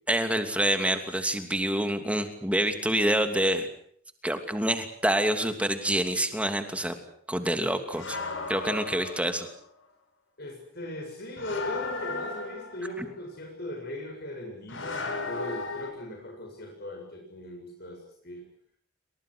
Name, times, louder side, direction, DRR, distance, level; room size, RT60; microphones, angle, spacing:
voice 1, 0.1-3.7 4.2-7.0 7.3-8.2 8.5-9.5, right 1 dB, 5° right, 7 dB, 2.9 m, -27 dB
sound 1, 7.9-9.6 11.4-13.0 14.7-15.9, left 3 dB, 70° left, 7.1 m, -35 dB
voice 2, 10.4-18.4, left 1 dB, 50° left, 1 dB, 7.3 m, -38 dB
29.0 x 25.5 x 6.5 m, 0.63 s
head